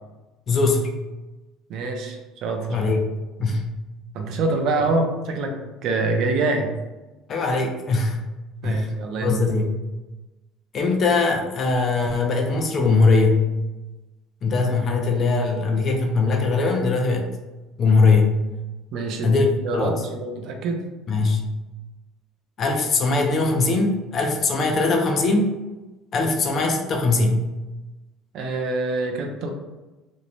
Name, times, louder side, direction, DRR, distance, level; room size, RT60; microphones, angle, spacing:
voice 1, 0.5-0.9 2.7-3.1 3.4-3.7 7.3-8.2 8.6-8.9 9.2-9.7 10.7-13.5 14.4-17.3 17.8-18.3 19.2-19.5 19.7-20.0 21.1-21.5 22.6-25.5 26.1-27.5, left 3 dB, 30° left, 2 dB, 0.4 m, -21 dB
voice 2, 1.7-2.7 4.1-5.5 5.8-6.7 8.6-9.4 18.9-19.4 19.6-20.9 28.3-29.5, right 3 dB, 50° right, 3 dB, 0.4 m, -25 dB
2.6 x 2.0 x 2.9 m, 1.1 s
cardioid pair, 165°, 0 cm